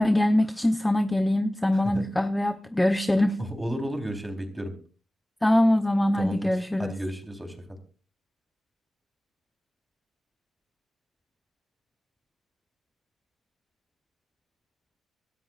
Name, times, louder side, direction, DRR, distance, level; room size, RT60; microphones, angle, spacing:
voice 1, 0.0-3.4 5.4-6.9, left 1 dB, 10° left, 9 dB, 0.8 m, -23 dB
voice 2, 1.7-2.0 3.4-4.7 6.1-7.8, equal, 10° right, 4 dB, 3.8 m, -33 dB
26.5 x 13.0 x 2.5 m, 0.39 s
cardioid pair, 90°, 0 cm